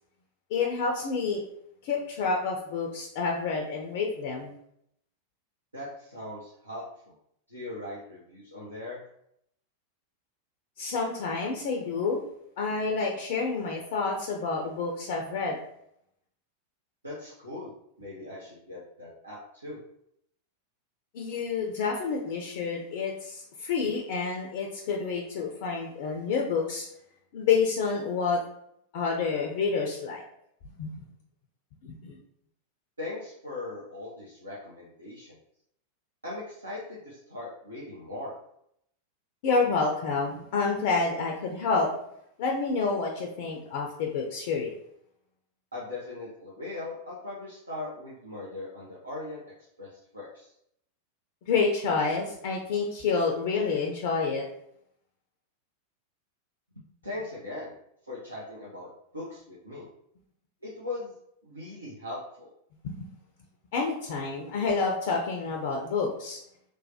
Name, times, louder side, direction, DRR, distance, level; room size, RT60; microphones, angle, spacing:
voice 1, 0.5-1.4 1.8-4.6 10.8-12.2 12.6-15.6 21.1-26.9 27.3-28.4 28.9-30.2 30.8-31.0 31.8-32.2 39.4-41.9 42.4-44.7 51.5-54.5 63.7-66.4, left 4 dB, 50° left, 1 dB, 0.4 m, -28 dB
voice 2, 5.7-7.1 7.5-9.0 17.0-17.7 18.0-19.8 33.0-35.4 36.2-38.3 45.7-49.4 49.8-50.5 56.7-57.7 58.1-58.9 59.1-59.9 60.6-61.1 61.4-62.5, left 2 dB, 80° right, -6 dB, 0.6 m, -39 dB
3.1 x 2.1 x 2.7 m, 0.73 s
figure-of-eight pair, 90°, 0 cm